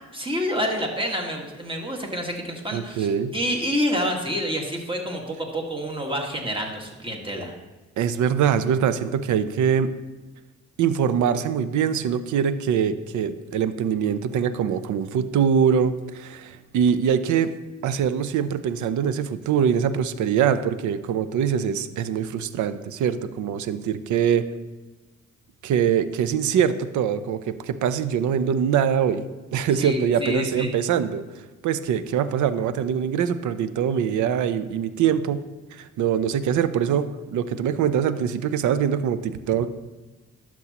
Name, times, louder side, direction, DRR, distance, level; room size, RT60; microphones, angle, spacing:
voice 1, 0.1-7.5 29.8-30.7, equal, 15° right, 0 dB, 1.8 m, -28 dB
voice 2, 2.7-3.3 8.0-9.9 10.8-17.5 17.8-24.4 25.6-29.2 29.5-31.2 31.6-35.4 35.7-39.7, right 8 dB, 75° right, 13 dB, 0.6 m, -23 dB
12.0 x 6.2 x 2.9 m, 1.2 s
cardioid pair, 75°, 30 cm